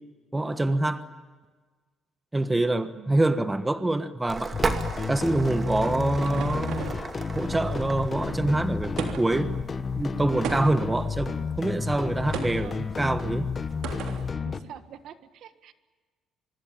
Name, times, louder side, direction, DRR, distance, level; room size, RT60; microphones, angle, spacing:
voice 1, 0.3-1.0 2.3-4.5 5.1-6.9 7.3-9.5 10.0-13.5, right 2 dB, 10° right, 10 dB, 1.3 m, -25 dB
voice 2, 2.9-3.3 12.6-12.9 14.4-15.7, right 9 dB, 65° right, 10 dB, 1.5 m, -46 dB
sound 1, 4.3-14.3, right 4 dB, 30° right, 2.3 m, -37 dB
sound 2, 4.5-14.6, left 5 dB, 30° left, 1.2 m, -32 dB
sound 3, 5.5-7.1 9.0-9.5 10.4-11.0 12.3-12.7 13.8-14.3, right 7 dB, 80° right, 3.3 m, -35 dB
24.5 x 24.5 x 8.8 m, 1.4 s
cardioid pair, 125°, 0 cm